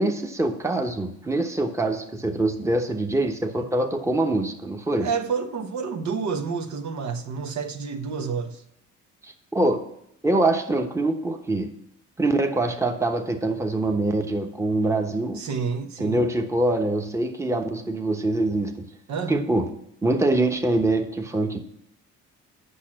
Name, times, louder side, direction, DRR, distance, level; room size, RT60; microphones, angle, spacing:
voice 1, 0.0-5.1 9.2-9.8 10.2-11.7 12.2-15.4 16.0-18.8 19.3-19.7 20.0-21.6, right 2 dB, 10° right, 1.1 m, -24 dB
voice 2, 5.0-8.6 15.4-16.2 19.1-19.4, right 5 dB, 65° right, 1.2 m, -29 dB
8.4 x 6.2 x 7.6 m
cardioid pair, 85°, 31 cm